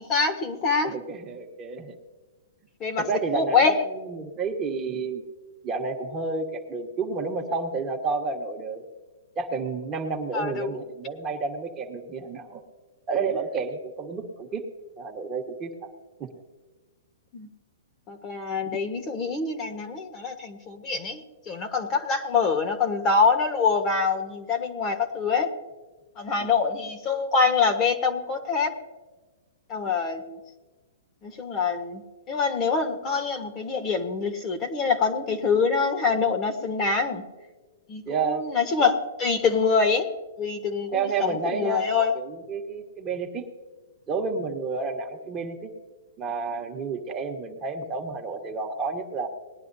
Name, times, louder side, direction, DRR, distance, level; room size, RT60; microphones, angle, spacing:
voice 1, 0.0-0.9 2.8-3.0 3.3-3.8 10.3-10.7 13.1-13.2 17.3-17.5 18.1-25.5 26.2-28.7 29.7-30.4 31.2-32.0 32.3-37.2 37.9-40.1 40.4-42.1, left 5 dB, 25° left, 6 dB, 1.3 m, -25 dB
voice 2, 0.8-2.0 3.0-3.5 4.1-5.2 5.6-8.8 9.3-12.6 13.1-14.6 15.0-15.7 16.2-16.3 26.4-26.5 38.1-38.4 40.9-41.9 42.1-43.4 44.1-45.7 46.2-49.3, right 4 dB, 20° right, 2 dB, 1.4 m, -30 dB
20.0 x 11.0 x 2.7 m, 1.3 s
hypercardioid pair, 155°, 0 cm